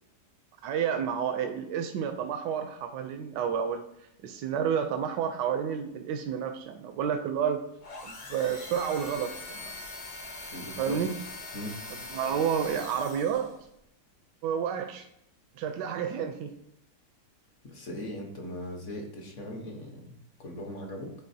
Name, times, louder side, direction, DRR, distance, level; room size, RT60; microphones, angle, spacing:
voice 1, 0.6-3.8 4.2-7.6 8.0-9.7 10.8-11.1 12.1-13.6 14.4-15.1 15.6-16.5 17.9-18.0, right 8 dB, 90° right, 6 dB, 1.2 m, -30 dB
sound 1, 7.8-13.6, left 2 dB, 35° left, 0.7 m, -42 dB
voice 2, 10.5-11.0 11.5-11.8 17.6-21.1, left 1 dB, 50° left, 2 dB, 1.2 m, -39 dB
9.5 x 4.1 x 2.7 m, 0.78 s
omnidirectional pair, 1.8 m